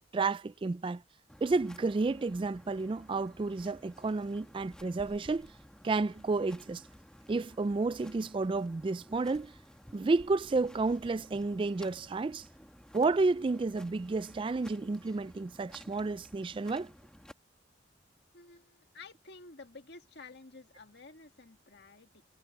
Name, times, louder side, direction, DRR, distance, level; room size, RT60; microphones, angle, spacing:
voice 1, 0.1-1.0 1.4-5.5 5.8-6.8 7.3-9.5 9.9-12.5 12.9-16.9, right 3 dB, 25° right, 0.3 m, -31 dB
sound 1, 1.3-17.3, equal, 5° left, 1.3 m, -55 dB
voice 2, 18.3-22.2, left 3 dB, 55° left, 2.0 m, -52 dB
head